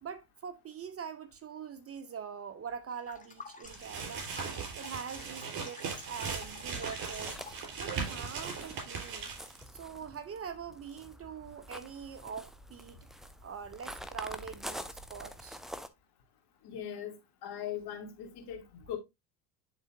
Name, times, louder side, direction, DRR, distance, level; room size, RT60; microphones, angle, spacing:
voice 1, 0.0-4.3 4.7-7.4 7.8-9.3 9.7-13.0 13.4-15.6, right 7 dB, 30° right, 0.8 m, -43 dB
sound 1, 2.9-7.7, left 4 dB, 15° left, 1.5 m, -51 dB
sound 2, 3.6-9.6, right 5 dB, 45° right, 4.0 m, -39 dB
sound 3, 7.0-15.9, equal, ahead, 0.3 m, -47 dB
voice 2, 16.6-17.2 17.4-19.0, left 9 dB, 50° left, 2.5 m, -40 dB
10.5 x 3.8 x 2.6 m
hypercardioid pair, 75°, 49 cm